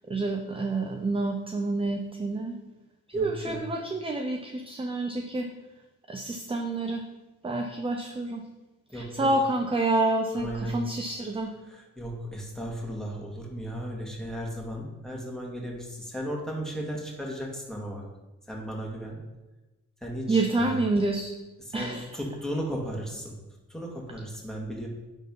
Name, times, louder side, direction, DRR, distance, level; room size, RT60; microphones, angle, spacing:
voice 1, 0.1-2.6 3.1-5.5 6.1-7.1 7.4-8.5 8.9-11.5 20.3-21.3 21.7-22.1, right 2 dB, 20° right, 4 dB, 0.7 m, -28 dB
voice 2, 3.1-3.6 8.9-9.3 10.3-10.8 11.7-18.0 18.5-19.2 20.0-20.8 21.7-23.4 23.7-24.9, equal, ahead, -2 dB, 2.3 m, -35 dB
9.9 x 4.0 x 5.5 m, 1.1 s
cardioid pair, 90°, 30 cm